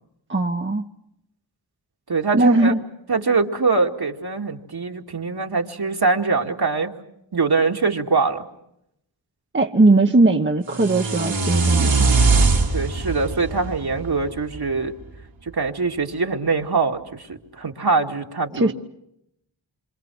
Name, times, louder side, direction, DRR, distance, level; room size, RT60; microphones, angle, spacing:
voice 1, 0.3-0.9 2.3-2.8 9.5-12.1 18.5-18.7, right 2 dB, 25° right, 3 dB, 1.2 m, -18 dB
voice 2, 2.1-2.7 3.1-6.9 7.3-8.5 12.7-14.9 15.5-18.7, right 4 dB, 55° right, 2 dB, 2.3 m, -23 dB
sound 1, 10.7-14.8, right 3 dB, 85° right, 3.6 m, -21 dB
27.0 x 25.0 x 6.3 m, 0.79 s
cardioid pair, 45°, 46 cm